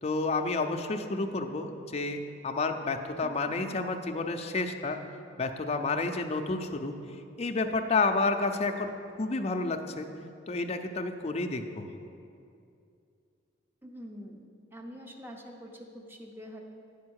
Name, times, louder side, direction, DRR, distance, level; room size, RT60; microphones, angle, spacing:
voice 1, 0.0-5.0 5.4-6.9 7.4-8.9 9.2-10.1 10.5-11.9, left 3 dB, 35° left, 5 dB, 0.5 m, -30 dB
voice 2, 3.2-3.5 13.8-14.4 14.7-16.6, equal, 10° right, 2 dB, 0.8 m, -45 dB
9.5 x 5.2 x 6.3 m, 2.5 s
head